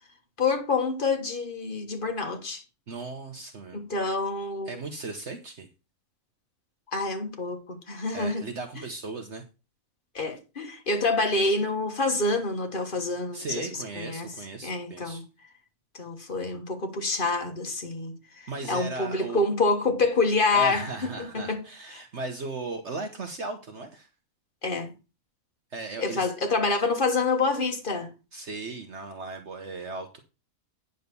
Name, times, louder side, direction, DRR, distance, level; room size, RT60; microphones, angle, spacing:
voice 1, 0.4-2.6 3.7-4.8 6.9-8.4 10.1-13.7 13.9-14.3 14.6-15.2 16.0-20.8 21.2-21.6 24.6-24.9 26.0-28.1, left 3 dB, 40° left, 1.6 m, -27 dB
voice 2, 2.9-3.8 4.7-5.7 8.1-9.4 13.3-15.2 18.5-19.4 20.5-24.1 25.7-26.3 28.3-30.2, right 3 dB, 55° right, 1.2 m, -36 dB
9.3 x 4.0 x 6.9 m
omnidirectional pair, 1.5 m